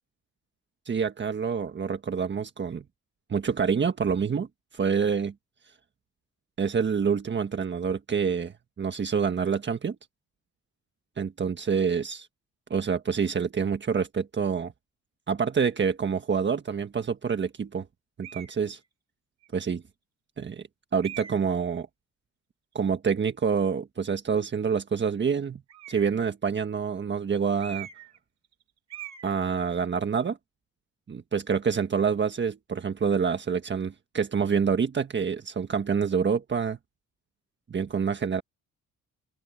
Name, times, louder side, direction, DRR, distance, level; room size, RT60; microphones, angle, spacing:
voice 1, 0.8-2.8 3.3-4.5 4.7-5.3 6.6-8.5 8.8-9.9 11.2-12.3 12.7-14.7 15.3-17.8 18.2-18.8 19.5-19.8 20.4-20.6 20.9-21.9 22.7-25.6 25.9-27.9 29.2-30.4 31.1-36.8 37.7-38.4, right 6 dB, 40° right, 1.5 m, -27 dB
sound 1, 18.2-18.6 19.4-19.5 21.0-21.6 25.7-26.3 27.6-28.2 28.4-28.6 28.9-29.3, right 10 dB, 60° right, 2.7 m, -42 dB
open air
cardioid pair, 90°, 30 cm